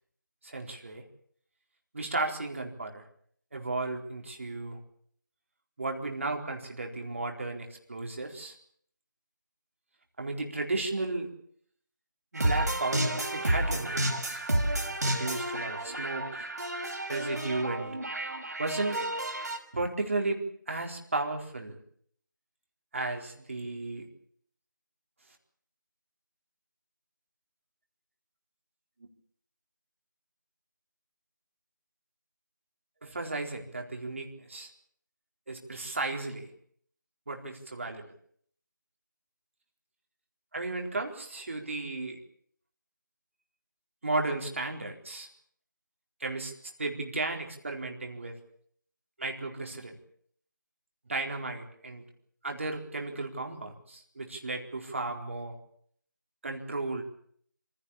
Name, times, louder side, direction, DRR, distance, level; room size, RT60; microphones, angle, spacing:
voice 1, 0.4-1.0 1.9-3.1 3.5-4.8 5.8-8.6 10.2-11.3 12.3-14.4 14.8-16.5 17.1-18.0 18.6-19.0 19.7-21.8 22.9-24.1 33.0-34.7 35.5-36.5 37.3-38.1 40.5-42.2 44.0-45.3 46.2-46.5 46.8-48.4 49.2-50.0 51.1-52.0 52.4-55.6 56.4-57.0, right 2 dB, 40° right, 2 dB, 4.2 m, -34 dB
sound 1, 12.4-19.6, right 1 dB, 55° right, 5.5 m, -31 dB
27.5 x 16.5 x 8.7 m, 0.64 s
figure-of-eight pair, 170°, 11 cm